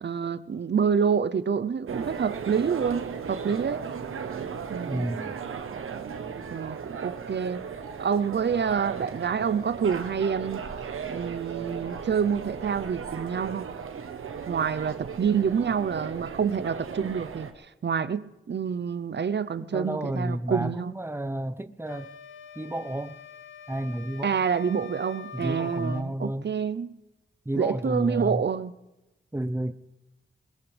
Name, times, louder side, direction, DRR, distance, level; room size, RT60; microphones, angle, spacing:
voice 1, 0.0-3.8 4.7-5.1 6.5-7.6 8.0-10.6 11.1-13.7 14.5-17.5 17.8-20.9 24.2-27.0 27.6-28.7, right 6 dB, 55° right, 0.7 m, -27 dB
sound 1, 1.9-17.5, right 6 dB, 80° right, 1.1 m, -36 dB
voice 2, 4.9-5.4 19.6-22.1 22.6-23.2 23.7-24.4 25.3-26.5 27.4-28.4 29.3-29.7, right 1 dB, 10° right, 0.9 m, -31 dB
sound 2, 21.9-26.1, left 6 dB, 70° left, 1.2 m, -44 dB
21.5 x 20.0 x 3.4 m
cardioid pair, 50°, 21 cm